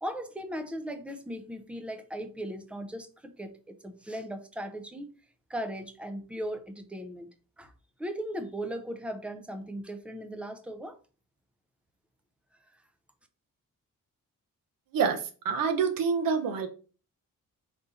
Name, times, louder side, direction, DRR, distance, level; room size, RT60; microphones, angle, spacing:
voice 1, 0.0-5.1 5.5-7.3 7.6-7.7 8.0-11.0, equal, 5° right, 6 dB, 0.4 m, -38 dB
voice 2, 15.4-16.7, right 6 dB, 85° right, 7 dB, 0.7 m, -26 dB
3.6 x 2.7 x 4.1 m, 0.37 s
wide cardioid pair, 150°, 33 cm